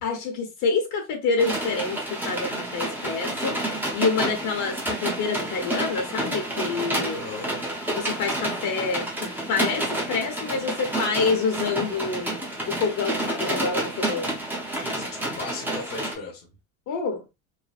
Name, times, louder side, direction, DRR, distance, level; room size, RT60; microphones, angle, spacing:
voice 1, 0.0-2.0 2.2-7.2 7.9-12.4 12.7-14.3 16.9-17.2, left 4 dB, 60° left, 1.0 m, -27 dB
sound 1, 1.4-16.1, right 1 dB, 5° right, 0.7 m, -29 dB
voice 2, 7.1-7.5 14.8-16.5, left 4 dB, 30° left, 0.9 m, -37 dB
3.2 x 2.1 x 2.4 m
cardioid pair, 145°, 33 cm